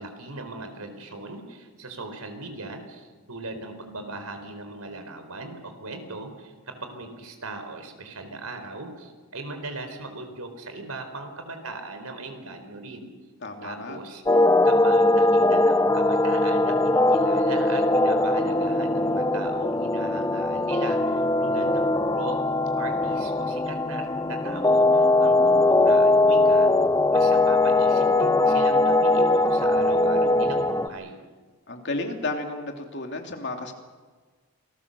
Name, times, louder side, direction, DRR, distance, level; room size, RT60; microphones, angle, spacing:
voice 1, 0.0-13.1 13.6-22.4 22.8-26.7 27.1-31.2, right 2 dB, 90° right, 7 dB, 4.2 m, -39 dB
voice 2, 13.4-14.0 29.5-30.5 31.7-33.7, left 2 dB, 50° left, 3 dB, 2.9 m, -33 dB
sound 1, 14.3-30.9, left 2 dB, 15° left, 0.7 m, -21 dB
27.5 x 19.5 x 6.9 m, 1.4 s
head